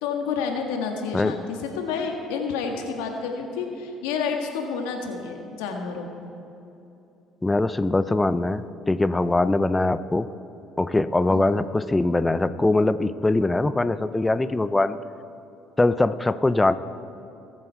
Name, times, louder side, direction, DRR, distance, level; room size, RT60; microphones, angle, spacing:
voice 1, 0.0-6.3 11.3-11.5, left 5 dB, 85° left, 3 dB, 1.6 m, -29 dB
voice 2, 7.4-10.3 10.8-15.0 15.8-16.7, left 2 dB, 15° left, 14 dB, 0.6 m, -22 dB
22.0 x 7.4 x 4.6 m, 2.8 s
supercardioid pair, 80°, 0 cm